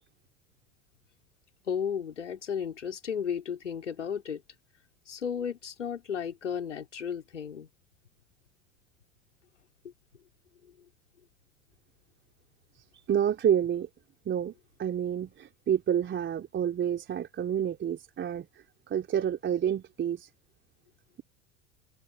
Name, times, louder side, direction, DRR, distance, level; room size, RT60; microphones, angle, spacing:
voice 1, 1.7-4.4 5.1-7.7, left 7 dB, 80° left, 4.5 m, -34 dB
voice 2, 13.1-13.9 14.3-14.5 14.8-18.5 18.9-20.3, right 9 dB, 30° right, 3.9 m, -28 dB
figure-of-eight pair, 70°, 36 cm